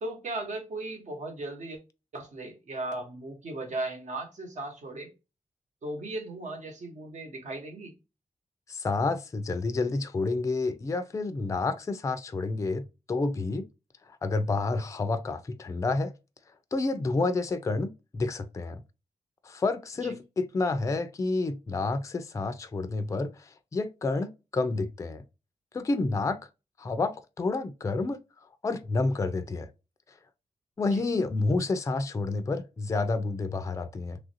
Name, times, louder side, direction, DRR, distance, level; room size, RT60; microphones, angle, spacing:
voice 1, 0.0-1.8 2.1-5.1 5.8-7.9 20.0-20.1 30.9-31.0, right 2 dB, 65° right, 1.1 m, -37 dB
voice 2, 8.7-13.6 14.2-16.1 16.7-18.8 19.4-25.2 25.7-26.4 26.8-28.2 28.6-29.7 30.8-34.2, left 3 dB, 25° left, 0.3 m, -29 dB
3.1 x 2.5 x 2.7 m
wide cardioid pair, 150°, 13 cm